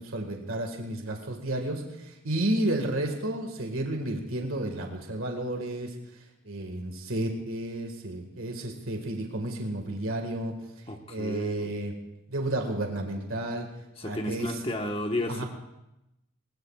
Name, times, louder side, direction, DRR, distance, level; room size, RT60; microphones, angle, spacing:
voice 1, 0.0-6.0 6.5-10.5 11.1-11.9 12.3-13.7 14.0-14.5 15.3-15.5, right 1 dB, 80° right, 3 dB, 1.8 m, -31 dB
voice 2, 10.9-11.7 14.0-15.5, left 1 dB, 25° left, 3 dB, 1.3 m, -32 dB
20.5 x 20.5 x 2.4 m, 0.90 s
head